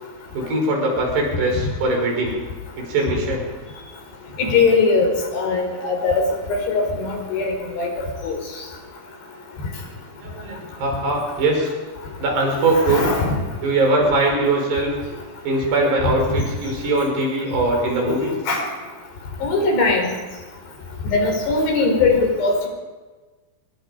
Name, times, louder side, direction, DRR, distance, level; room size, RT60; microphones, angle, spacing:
voice 1, 0.3-2.4 2.8-3.5 10.2-11.7 12.2-13.1 13.6-14.9 15.4-18.3, right 2 dB, 80° right, 0 dB, 8.0 m, -21 dB
voice 2, 4.4-8.4 12.7-13.4 16.0-16.1 18.1-18.2 18.5-18.7 19.4-20.2 21.1-22.7, left 3 dB, 90° left, 2 dB, 7.0 m, -20 dB
25.5 x 22.0 x 5.3 m, 1.3 s
omnidirectional pair, 4.7 m